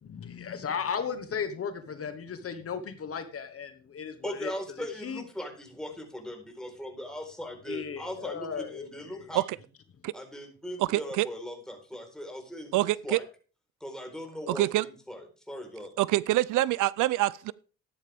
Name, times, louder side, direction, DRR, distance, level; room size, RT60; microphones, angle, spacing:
voice 1, 0.0-4.5 5.0-5.2 7.7-9.3, left 6 dB, 50° left, 1.3 m, -36 dB
voice 2, 4.2-9.4 10.1-13.2 13.8-15.9, equal, ahead, 4.3 m, -39 dB
voice 3, 10.8-11.3 12.7-13.2 14.5-14.8 16.0-17.5, right 16 dB, 85° right, 0.5 m, -25 dB
13.5 x 10.5 x 3.5 m
cardioid pair, 90°, 30 cm